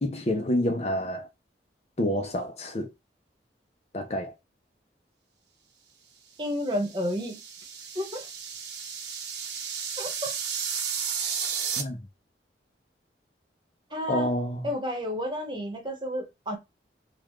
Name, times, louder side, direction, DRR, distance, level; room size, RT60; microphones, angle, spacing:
voice 1, 0.0-1.3 2.0-2.9 3.9-4.3 11.8-12.0 14.1-14.7, left 1 dB, 35° left, 0.6 m, -28 dB
voice 2, 6.4-7.4 7.9-8.2 10.0-10.3 13.9-14.3 14.6-16.6, left 1 dB, 25° right, 1.1 m, -31 dB
sound 1, 6.7-11.8, right 7 dB, 75° right, 1.0 m, -33 dB
4.0 x 2.4 x 3.1 m
head